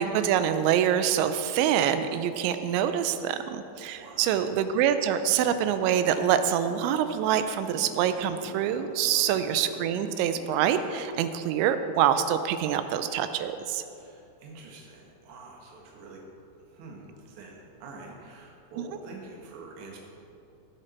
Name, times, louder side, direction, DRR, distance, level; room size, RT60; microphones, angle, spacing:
voice 1, 0.0-13.8, right 9 dB, 85° right, 10 dB, 2.8 m, -25 dB
voice 2, 4.0-4.5 9.1-9.5 13.9-16.2 16.6-20.0, right 3 dB, 60° right, -1 dB, 2.2 m, -46 dB
sound 1, 5.4-10.7, left 1 dB, 40° left, 2.2 m, -46 dB
17.0 x 6.7 x 4.3 m, 2.6 s
omnidirectional pair, 5.4 m